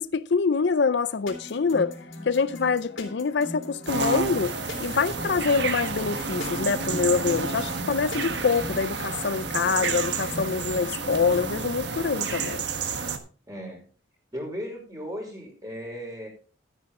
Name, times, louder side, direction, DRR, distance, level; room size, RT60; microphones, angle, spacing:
voice 1, 0.0-2.0 2.3-12.6, left 5 dB, 60° left, 0.5 m, -25 dB
sound 1, 1.3-11.6, left 2 dB, 80° left, 3.5 m, -41 dB
sound 2, 3.9-13.2, right 4 dB, 60° right, 1.4 m, -30 dB
voice 2, 13.5-13.8 14.3-16.3, equal, 20° right, 5.5 m, -36 dB
13.0 x 10.0 x 3.7 m
head